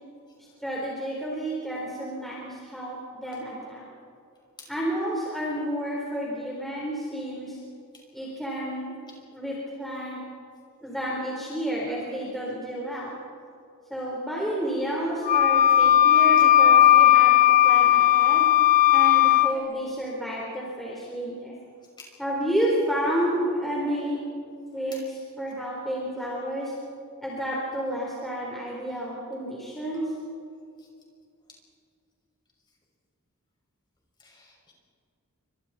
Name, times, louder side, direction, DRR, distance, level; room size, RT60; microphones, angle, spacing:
voice 1, 0.4-3.8 4.7-7.6 8.1-8.9 9.3-10.2 10.8-13.1 13.9-18.5 18.9-21.6 22.2-24.2 24.7-25.0 25.4-26.7 27.2-30.0, equal, ahead, -5 dB, 4.1 m, -30 dB
Wind instrument woodwind instrument, 15.3-19.5, left 12 dB, 35° left, 0.5 m, -17 dB
voice 2, 34.2-34.7, left 3 dB, 20° left, -2 dB, 6.0 m, -49 dB
30.0 x 25.5 x 4.3 m, 2.4 s
head